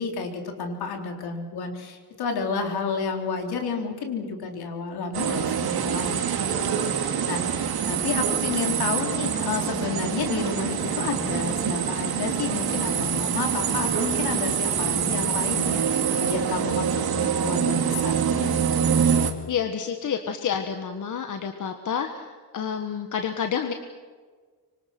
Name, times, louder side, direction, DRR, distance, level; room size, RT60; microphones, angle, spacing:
voice 1, 0.0-6.2 6.5-18.5, left 5 dB, 70° left, 3 dB, 4.1 m, -31 dB
sound 1, 5.1-19.3, right 8 dB, 65° right, 2.4 m, -25 dB
voice 2, 19.5-23.7, left 7 dB, 50° left, 5 dB, 1.7 m, -29 dB
25.5 x 25.0 x 6.1 m, 1.5 s
cardioid pair, 145°, 40 cm